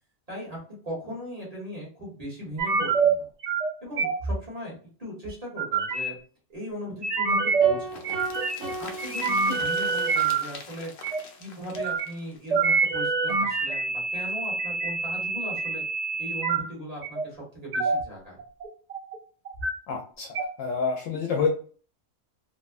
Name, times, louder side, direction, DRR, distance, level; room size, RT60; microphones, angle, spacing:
voice 1, 0.3-0.6 0.8-3.3 3.8-6.2 6.5-8.0 8.6-10.9 11.4-15.8 16.2-18.4, equal, 30° right, -4 dB, 1.2 m, -38 dB
sound 1, 2.6-3.1 3.4-3.7 4.0-4.3 5.2-6.1 7.0-7.7 8.0-8.7 9.0-10.4 11.0-11.2 11.8-12.1 12.5-16.6 17.0-17.2 17.7-18.0 18.4-19.2 19.5-19.7 20.3-20.4, right 4 dB, 65° right, 0.4 m, -26 dB
sound 2, 7.6-10.1, right 1 dB, 85° right, 1.2 m, -38 dB
sound 3, 7.9-13.6 13.9-14.0 14.3-14.4, left 4 dB, 60° left, 0.6 m, -44 dB
voice 2, 19.9-20.3 20.6-21.5, left 5 dB, 80° left, 2 dB, 0.9 m, -27 dB
2.8 x 2.1 x 2.4 m, 0.41 s
omnidirectional pair, 1.3 m